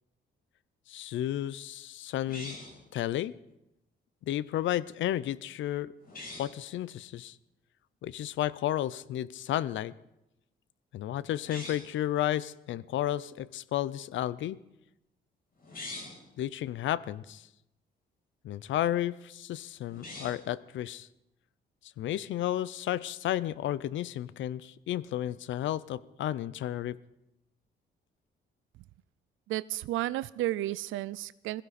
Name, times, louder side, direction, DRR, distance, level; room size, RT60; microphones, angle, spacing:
voice 1, 0.9-2.6 2.9-3.3 4.3-5.9 6.4-7.4 8.0-9.9 10.9-14.6 16.4-17.4 18.4-21.1 22.0-27.0, left 12 dB, 70° left, 19 dB, 0.6 m, -32 dB
sound 1, 2.3-2.9 6.0-6.6 11.4-12.0 15.6-16.3 19.9-20.5, left 2 dB, 45° left, 6.1 m, -43 dB
voice 2, 29.5-31.6, right 15 dB, 85° right, 17 dB, 0.5 m, -32 dB
21.5 x 15.5 x 4.2 m, 0.88 s
cardioid pair, 90°, 20 cm